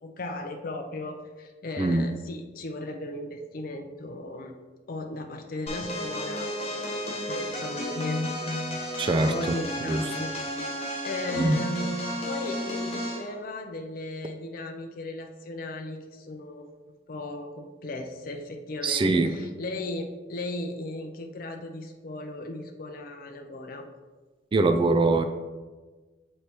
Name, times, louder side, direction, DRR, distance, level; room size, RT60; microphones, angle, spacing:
voice 1, 0.0-4.6 4.9-8.8 9.3-16.7 17.1-23.9, left 2 dB, 50° left, 3 dB, 0.5 m, -36 dB
voice 2, 1.8-2.1 9.0-10.1 11.4-11.6 18.8-19.3 24.5-25.2, right 2 dB, 30° right, 8 dB, 0.3 m, -23 dB
sound 1, 5.7-13.3, equal, 35° left, 1.2 m, -33 dB
6.7 x 3.3 x 4.3 m, 1.3 s
head